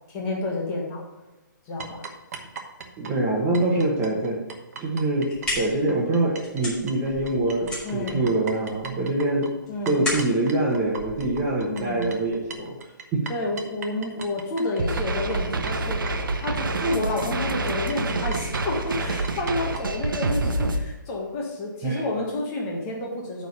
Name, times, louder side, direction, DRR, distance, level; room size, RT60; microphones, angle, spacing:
voice 1, 0.1-1.0 1.7-2.0 7.8-8.2 9.7-10.1 11.7-12.1 13.3-16.0 16.4-23.5, left 2 dB, 25° left, -1 dB, 1.5 m, -30 dB
sound 1, 1.8-6.6 6.9-19.8, right 5 dB, 50° right, 1.1 m, -40 dB
voice 2, 3.0-4.4 4.8-9.5 9.9-12.7 13.1-13.3 21.8-22.0, right 2 dB, 20° right, -2 dB, 1.5 m, -24 dB
sound 2, 5.0-11.9, left 1 dB, 10° left, 2.5 m, -35 dB
sound 3, 14.8-20.8, right 2 dB, 90° right, 0.9 m, -27 dB
9.1 x 4.1 x 6.6 m, 1.0 s
hypercardioid pair, 160°, 11 cm